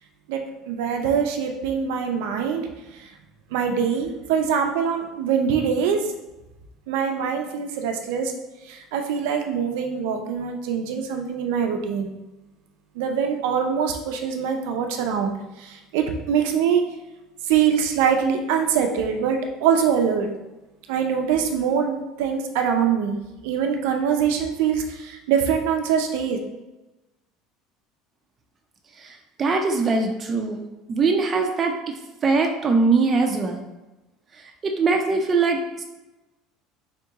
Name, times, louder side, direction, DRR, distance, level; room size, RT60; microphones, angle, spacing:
voice 1, 0.7-2.7 3.0-3.1 3.5-6.1 6.9-8.3 8.7-12.1 13.0-16.8 17.5-20.3 20.9-23.2 23.4-26.4, right 7 dB, 80° right, 4 dB, 0.5 m, -23 dB
voice 2, 29.0-30.6 30.9-31.7 32.2-33.6 34.6-35.8, right 4 dB, 25° right, 3 dB, 0.5 m, -22 dB
3.6 x 2.9 x 3.5 m, 1.0 s
cardioid pair, 155°, 0 cm